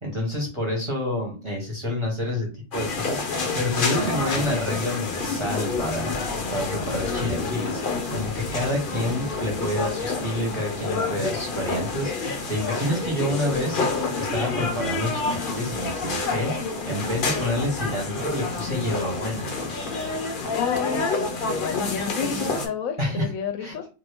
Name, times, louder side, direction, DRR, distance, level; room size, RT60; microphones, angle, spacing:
voice 1, 0.0-6.2 6.5-19.5 23.0-23.3 23.6-23.7, left 1 dB, 25° right, -2 dB, 0.9 m, -28 dB
sound 1, 2.7-22.7, left 3 dB, 50° left, 0.7 m, -28 dB
sound 2, 4.5-20.5, right 2 dB, 85° right, 1.4 m, -47 dB
voice 2, 20.4-21.1 21.4-23.9, left 7 dB, 75° left, 7 dB, 1.0 m, -31 dB
2.7 x 2.6 x 3.3 m, 0.33 s
omnidirectional pair, 1.5 m